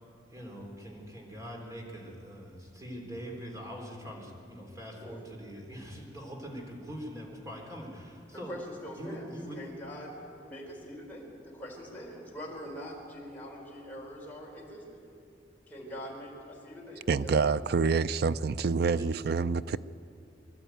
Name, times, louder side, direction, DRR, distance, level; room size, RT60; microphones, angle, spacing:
voice 1, 0.3-8.6 9.0-9.6 19.0-19.1, equal, 20° right, 0 dB, 3.6 m, -43 dB
voice 2, 8.3-14.8 15.7-17.6, equal, 10° left, -4 dB, 4.6 m, -43 dB
voice 3, 17.1-19.8, right 4 dB, 60° right, 16 dB, 0.4 m, -27 dB
24.0 x 12.0 x 9.2 m, 2.6 s
head